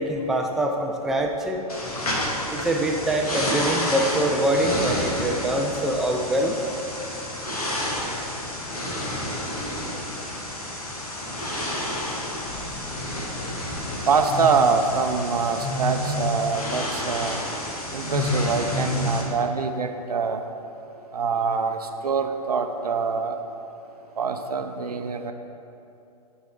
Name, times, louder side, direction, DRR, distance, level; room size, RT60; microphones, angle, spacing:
voice 1, 0.0-1.6 2.5-6.6, right 1 dB, ahead, 1 dB, 0.3 m, -24 dB
sound 1, 1.7-19.2, left 1 dB, 70° left, 1.7 m, -29 dB
voice 2, 14.1-17.4 17.9-20.4 21.1-23.4 24.2-25.3, right 5 dB, 75° right, 7 dB, 0.6 m, -24 dB
9.2 x 4.1 x 4.8 m, 2.8 s
figure-of-eight pair, 115°, 20 cm